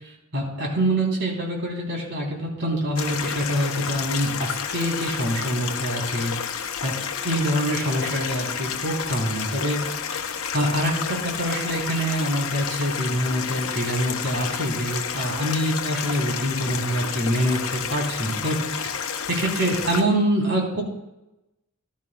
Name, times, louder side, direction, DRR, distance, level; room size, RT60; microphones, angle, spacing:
voice 1, 0.0-6.9 7.2-9.8 10.2-18.9 19.4-20.8, equal, 60° right, -2 dB, 3.3 m, -25 dB
Stream, 3.0-20.0, left 7 dB, 85° left, 0.8 m, -30 dB
15.0 x 12.0 x 2.3 m, 0.93 s
head